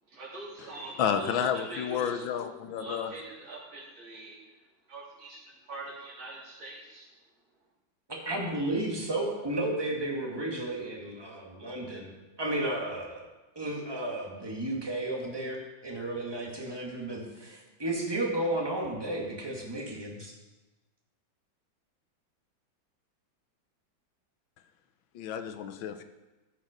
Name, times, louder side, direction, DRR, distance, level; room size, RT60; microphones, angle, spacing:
voice 1, 0.1-2.3 2.8-4.3 4.9-7.1, right 2 dB, 85° right, -7 dB, 4.1 m, -43 dB
voice 2, 1.0-3.1 25.1-26.0, left 8 dB, 85° left, 9 dB, 1.5 m, -31 dB
voice 3, 8.1-12.1 12.4-13.2 13.6-20.3, right 1 dB, 15° right, -2 dB, 1.9 m, -33 dB
14.5 x 6.0 x 5.1 m, 1.1 s
omnidirectional pair, 2.1 m